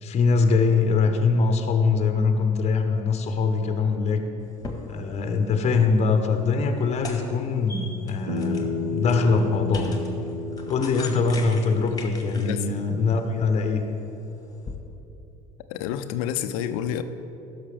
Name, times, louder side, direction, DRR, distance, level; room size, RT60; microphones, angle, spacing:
voice 1, 0.0-4.3 4.9-10.0 10.7-13.8, left 4 dB, 35° left, 6 dB, 0.9 m, -23 dB
sound 1, 4.4-14.8, left 3 dB, 20° left, 1.5 m, -42 dB
Bass guitar, 8.3-12.6, left 3 dB, 75° right, 1.6 m, -32 dB
voice 2, 15.7-17.0, left 10 dB, 65° left, 10 dB, 0.6 m, -29 dB
16.0 x 6.5 x 3.4 m, 3.0 s
figure-of-eight pair, 60°, 19 cm